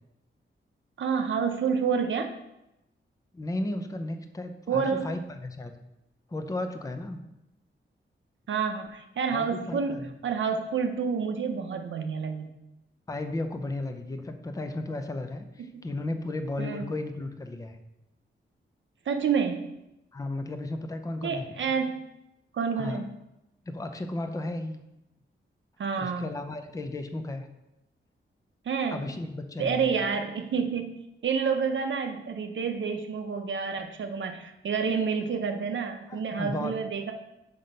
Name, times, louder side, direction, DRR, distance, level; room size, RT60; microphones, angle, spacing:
voice 1, 1.0-2.3 4.7-5.1 8.5-12.5 15.7-15.8 16.6-16.9 19.1-19.8 21.2-22.0 22.5-23.1 25.8-26.3 28.7-29.0 29.6-37.1, right 6 dB, 70° right, 5 dB, 0.6 m, -29 dB
voice 2, 3.3-5.8 6.3-7.2 9.3-10.1 13.1-17.8 20.1-21.5 22.8-23.0 23.7-24.8 26.0-27.5 28.9-29.9 36.1-36.7, left 2 dB, 15° left, 7 dB, 0.5 m, -34 dB
6.0 x 5.1 x 5.3 m, 0.90 s
wide cardioid pair, 165°, 20 cm